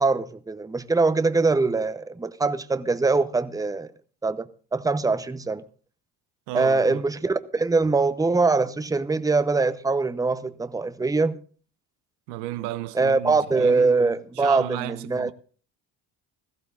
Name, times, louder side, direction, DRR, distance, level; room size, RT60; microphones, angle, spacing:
voice 1, 0.0-3.9 4.2-5.6 6.5-11.4 12.9-15.3, right 3 dB, 5° right, 0.8 m, -23 dB
voice 2, 6.5-7.0 12.3-15.3, right 16 dB, 75° right, 0.8 m, -34 dB
17.0 x 14.5 x 2.5 m
hypercardioid pair, 60°, 49 cm